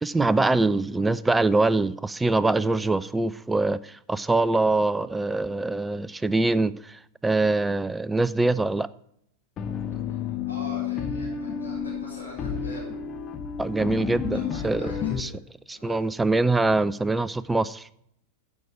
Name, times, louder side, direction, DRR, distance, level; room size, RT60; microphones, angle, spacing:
voice 1, 0.0-8.9 13.6-14.9 15.2-15.3 15.7-17.9, right 2 dB, 10° right, 0.4 m, -24 dB
sound 1, 9.6-15.2, left 7 dB, 30° left, 0.9 m, -31 dB
voice 2, 10.0-12.9 14.3-15.3 15.7-16.1, left 1 dB, 90° left, 4.1 m, -43 dB
14.5 x 6.0 x 4.8 m
figure-of-eight pair, 90°, 0 cm